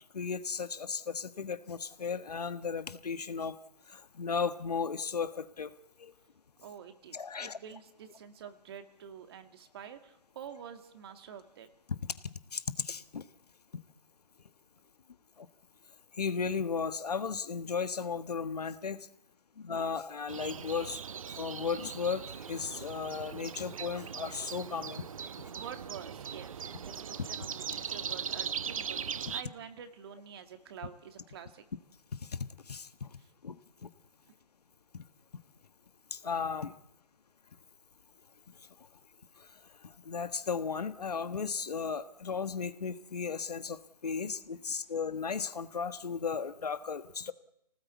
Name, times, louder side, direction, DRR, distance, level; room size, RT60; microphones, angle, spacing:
voice 1, 0.1-3.5 3.9-5.7 6.0-6.1 7.1-7.6 12.5-13.2 15.4-15.5 16.2-19.1 19.6-21.0 21.4-25.0 32.3-32.4 32.7-33.1 33.4-33.5 33.8-33.9 36.1-36.7 40.0-47.3, left 5 dB, 65° left, 12 dB, 1.4 m, -35 dB
voice 2, 6.6-11.7 25.5-31.6 33.2-33.3 34.2-34.3, right 8 dB, 35° right, 8 dB, 2.1 m, -48 dB
sound 1, 20.3-29.4, right 7 dB, 55° right, 0.9 m, -40 dB
26.0 x 18.5 x 8.3 m, 0.84 s
figure-of-eight pair, 150°, 21 cm